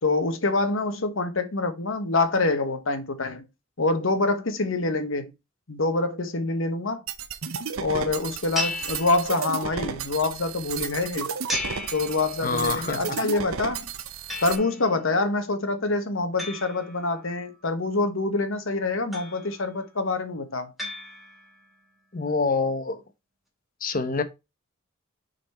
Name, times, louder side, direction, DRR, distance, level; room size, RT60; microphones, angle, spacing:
voice 1, 0.0-3.5 3.8-5.3 5.7-7.0 7.8-11.3 11.9-13.9 14.4-20.7, left 3 dB, 70° left, 1.2 m, -26 dB
sound 1, 7.1-14.6, right 6 dB, 85° right, 0.8 m, -33 dB
sound 2, 8.5-9.8 11.5-12.8 14.3-15.0 16.4-17.5 19.1-19.8 20.8-21.7, left 1 dB, ahead, 2.1 m, -35 dB
voice 2, 12.4-13.2 22.1-23.0 23.8-24.2, left 4 dB, 40° left, 0.9 m, -26 dB
6.4 x 4.2 x 4.3 m
head